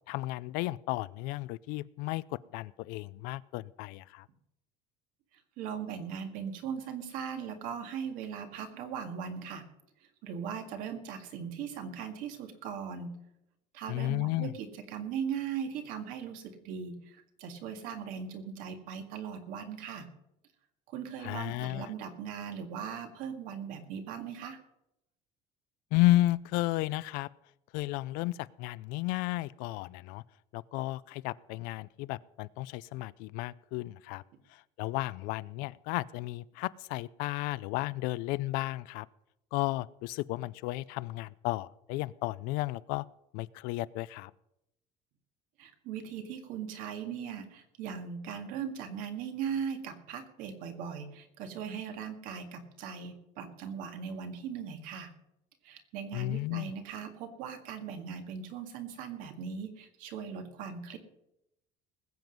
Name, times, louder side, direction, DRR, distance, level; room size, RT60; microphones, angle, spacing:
voice 1, 0.1-4.3 13.9-14.5 21.2-21.9 25.9-27.3 27.7-30.2 30.5-34.2 34.5-39.1 39.5-43.0 43.3-44.3 56.1-56.7, left 18 dB, 75° left, 19 dB, 0.5 m, -33 dB
voice 2, 5.6-9.7 10.2-13.1 13.7-20.1 20.9-24.6 45.6-55.1 55.6-61.0, right 7 dB, 65° right, 6 dB, 1.9 m, -39 dB
20.0 x 7.9 x 5.3 m, 0.83 s
cardioid pair, 175°, 15 cm